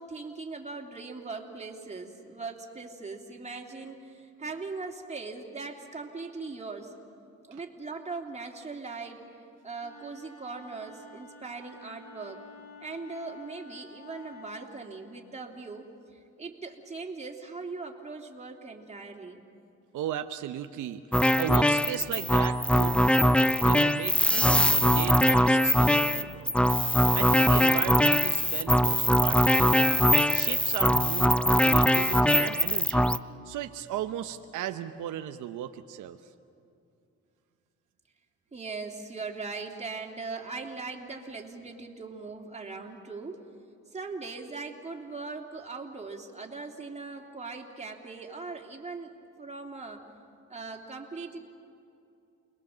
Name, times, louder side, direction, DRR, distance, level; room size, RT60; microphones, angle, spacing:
voice 1, 0.0-6.9 7.4-12.4 12.8-19.4 38.5-43.5 43.9-49.1 49.4-50.0 50.5-51.4, right 4 dB, 20° right, 1 dB, 3.1 m, -40 dB
Wind instrument woodwind instrument, 9.8-14.6, left 3 dB, 55° left, 4.7 m, -50 dB
voice 2, 19.9-23.0 23.6-26.5 27.1-30.0 30.3-33.1 33.4-36.2, right 11 dB, 80° right, 8 dB, 0.9 m, -36 dB
sound 1, 21.1-33.2, equal, 5° left, 0.5 m, -22 dB
29.0 x 21.0 x 7.4 m, 2.6 s
cardioid pair, 90°, 30 cm